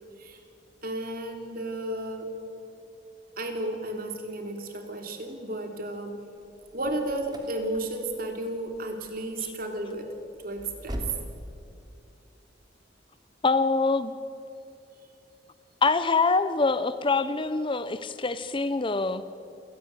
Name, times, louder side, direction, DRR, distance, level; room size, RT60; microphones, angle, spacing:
voice 1, 0.8-2.3 3.4-6.2 6.7-10.1 10.4-11.0, right 1 dB, 50° right, 4 dB, 3.4 m, -33 dB
sound 1, 6.4-11.3, equal, 25° right, 2.9 m, -42 dB
voice 2, 13.4-14.1 15.8-19.2, left 3 dB, 30° left, 13 dB, 0.7 m, -24 dB
27.5 x 17.0 x 9.7 m, 2.6 s
head